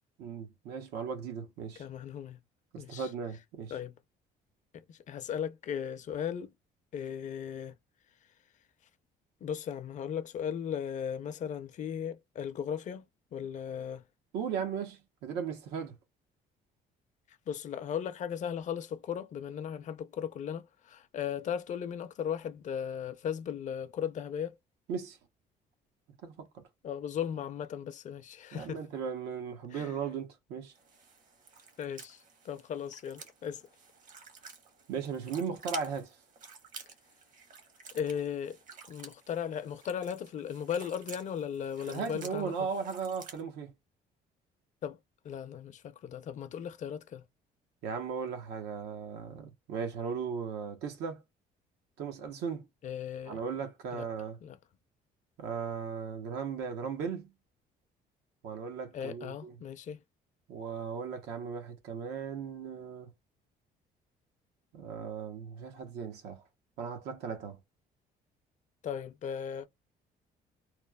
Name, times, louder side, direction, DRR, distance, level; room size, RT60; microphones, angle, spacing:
voice 1, 0.2-1.8 2.7-3.7 14.3-15.9 24.9-25.2 26.2-26.6 28.5-30.7 34.9-36.1 41.9-43.7 47.8-51.2 52.0-52.7 53.3-54.4 55.4-57.3 58.4-59.6 60.5-63.1 64.7-66.4 66.8-67.6, right 6 dB, 85° right, 0.9 m, -37 dB
voice 2, 1.8-2.4 2.8-3.1 3.7-3.9 4.7-6.5 6.9-7.8 9.4-14.0 17.5-24.6 26.8-28.8 29.7-29.9 31.8-33.6 37.9-38.6 38.9-42.5 44.8-45.0 45.2-47.2 52.8-53.4 53.9-54.1 54.4-54.6 58.9-60.0 68.8-69.7, left 8 dB, 45° left, 0.5 m, -37 dB
sound 1, 30.7-43.4, right 5 dB, 50° right, 1.0 m, -51 dB
3.0 x 2.0 x 2.2 m
cardioid pair, 110°, 17 cm